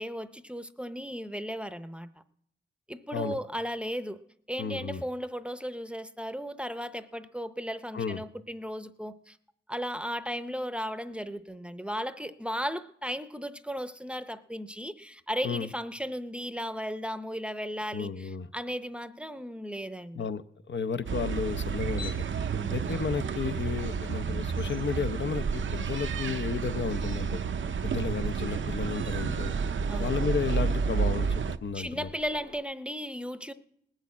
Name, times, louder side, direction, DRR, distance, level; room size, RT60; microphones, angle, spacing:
voice 1, 0.0-2.1 2.9-4.2 4.5-9.4 9.7-20.3 22.5-23.2 29.9-30.3 31.7-33.5, equal, 5° right, 0.6 m, -36 dB
voice 2, 4.6-5.0 7.9-8.2 15.4-15.7 17.9-18.5 20.2-22.3 22.7-27.4 27.8-29.6 30.0-32.1, left 6 dB, 70° left, 0.6 m, -33 dB
sound 1, 21.0-32.6, left 4 dB, 90° left, 4.3 m, -52 dB
sound 2, 21.1-31.6, right 6 dB, 80° right, 0.6 m, -30 dB
19.0 x 6.5 x 8.3 m
wide cardioid pair, 100°, 20 cm